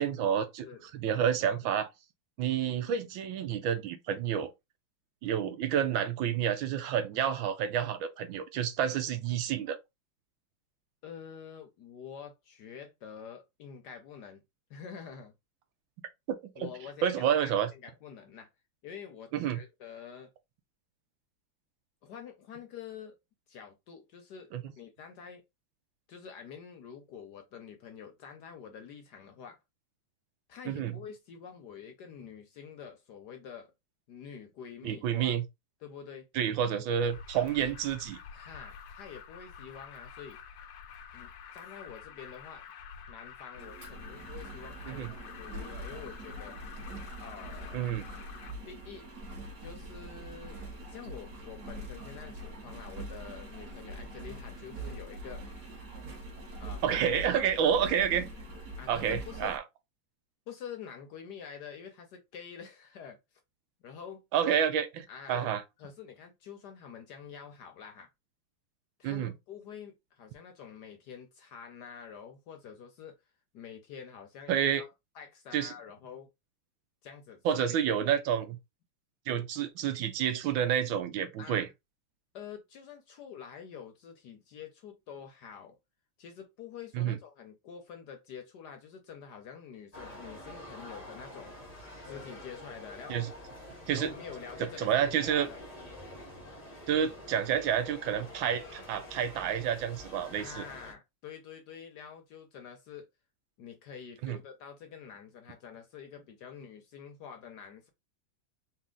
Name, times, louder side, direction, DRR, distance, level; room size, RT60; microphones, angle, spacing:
voice 1, 0.0-1.9 2.4-4.5 5.2-9.8 16.3-16.7 17.0-17.7 19.3-19.6 24.5-24.6 30.7-30.9 34.8-35.4 36.3-38.2 44.9-45.1 47.7-48.0 56.8-58.3 58.9-59.6 64.3-65.6 69.0-69.3 74.5-74.8 75.5-75.7 77.4-78.6 79.3-81.7 86.9-87.2 93.1-93.3 93.9-94.1 94.8-95.5 96.9-100.6 104.2-104.4, right 9 dB, 75° right, 1.3 m, -29 dB
voice 2, 11.0-14.4 14.7-15.3 16.6-18.5 18.8-20.3 22.0-23.2 23.5-24.5 24.8-25.4 26.1-29.6 30.5-33.7 34.1-35.3 35.8-36.3 36.7-36.9 38.3-40.4 41.1-42.6 43.1-46.6 47.2-47.9 48.7-49.1 49.6-50.6 50.9-55.5 56.6-57.5 58.8-59.5 60.5-63.2 63.8-64.2 65.1-65.5 65.8-68.1 69.0-73.2 73.5-76.3 77.0-78.1 81.4-81.7 82.3-85.8 86.2-91.5 92.0-93.2 93.9-95.6 100.4-103.1 103.6-107.9, left 7 dB, 65° left, 1.1 m, -47 dB
Alarm, 37.0-48.5, left 7 dB, 85° left, 1.5 m, -48 dB
Engine, 43.5-59.6, right 1 dB, 45° right, 1.8 m, -43 dB
sound 1, 89.9-100.9, left 1 dB, 35° left, 0.6 m, -47 dB
4.2 x 2.5 x 3.7 m
omnidirectional pair, 2.3 m